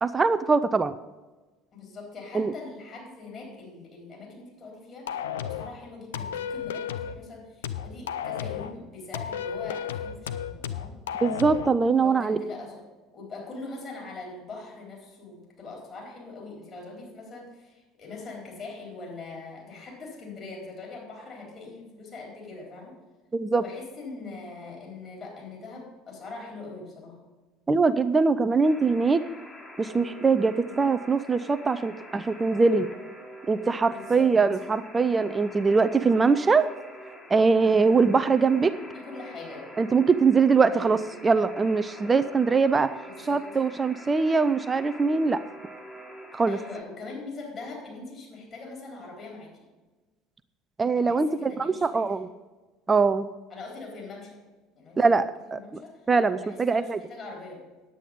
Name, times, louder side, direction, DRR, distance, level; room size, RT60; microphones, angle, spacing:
voice 1, 0.0-0.9 2.3-2.5 11.2-12.4 23.3-23.6 27.7-29.2 29.8-32.9 33.5-36.7 37.3-38.7 39.8-42.9 43.2-45.4 46.3-46.6 50.8-52.3 52.9-53.3 55.0-55.2 55.5-55.6 56.1-57.0, right 4 dB, 20° right, 12 dB, 0.5 m, -22 dB
voice 2, 1.7-11.0 11.9-12.8 13.1-22.9 23.6-27.2 33.9-34.3 38.9-39.7 40.7-41.0 43.1-43.4 46.5-49.5 50.9-52.2 53.5-54.4 54.8-55.1 55.5-55.9 56.4-57.6, left 3 dB, 35° left, -1 dB, 4.0 m, -42 dB
sound 1, 5.1-5.7 6.1-7.2 7.6-8.7 9.1-11.7, left 8 dB, 70° left, 0.5 m, -33 dB
Alarm, 28.6-46.8, equal, 15° left, 1.8 m, -46 dB
10.0 x 8.4 x 5.3 m, 1.2 s
figure-of-eight pair, 65°, 0 cm